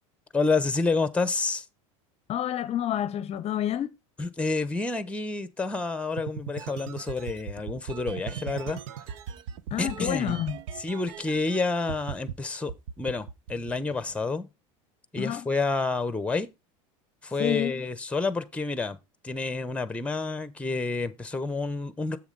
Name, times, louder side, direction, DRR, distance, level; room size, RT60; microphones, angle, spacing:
voice 1, 0.3-1.6 4.2-8.8 9.8-10.4 10.8-14.5 15.1-16.5 17.2-19.0 19.2-22.2, left 3 dB, 5° left, 1.0 m, -29 dB
voice 2, 2.3-3.9 9.7-10.6 15.2-15.5 17.4-17.8, left 11 dB, 40° left, 0.7 m, -29 dB
sound 1, 6.2-11.6 11.9-12.3 12.7-14.1, right 8 dB, 75° right, 0.9 m, -38 dB
7.7 x 7.0 x 4.0 m
hypercardioid pair, 95°, 17 cm